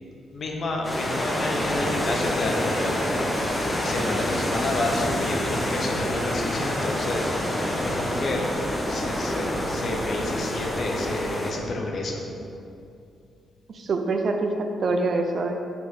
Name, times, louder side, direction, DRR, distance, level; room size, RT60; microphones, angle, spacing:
voice 1, 0.3-3.2 3.8-7.3 7.8-8.4 8.9-12.2, left 2 dB, 55° left, 0 dB, 1.1 m, -30 dB
sound 1, 0.8-11.5, left 1 dB, 25° left, 1.1 m, -27 dB
voice 2, 13.7-15.5, right 3 dB, 55° right, 4 dB, 0.5 m, -25 dB
6.1 x 3.9 x 5.0 m, 2.5 s
supercardioid pair, 50°, 0 cm